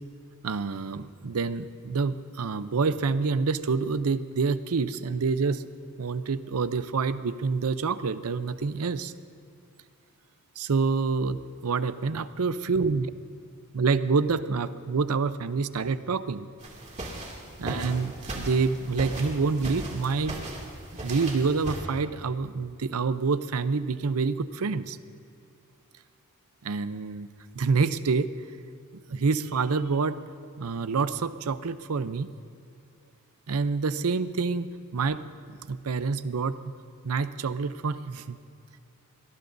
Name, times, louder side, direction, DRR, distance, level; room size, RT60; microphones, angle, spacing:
voice 1, 0.4-5.6 6.0-9.1 10.6-13.1 13.7-16.5 17.6-20.4 21.0-25.0 26.6-27.3 27.5-28.3 29.1-30.2 30.6-32.3 33.5-35.2 35.7-36.6 37.0-38.4, right 4 dB, 85° right, 13 dB, 0.6 m, -27 dB
sound 1, 16.6-21.8, right 1 dB, 30° right, 2.4 m, -37 dB
23.5 x 18.5 x 2.7 m, 2.5 s
head